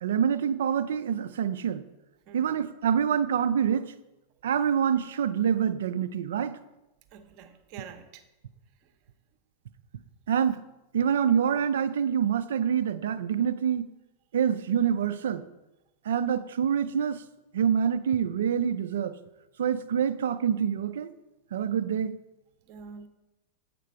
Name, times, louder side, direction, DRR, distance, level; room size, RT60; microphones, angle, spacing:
voice 1, 0.0-1.8 2.3-3.9 4.4-6.6 10.3-10.6 10.9-13.9 14.3-15.4 16.0-17.2 17.5-19.2 19.6-21.1 21.5-22.1, right 8 dB, 60° right, 13 dB, 0.4 m, -26 dB
voice 2, 7.1-8.2 22.7-23.1, right 6 dB, 40° right, 8 dB, 0.8 m, -46 dB
8.3 x 5.9 x 4.6 m, 0.99 s
figure-of-eight pair, 90°, 0 cm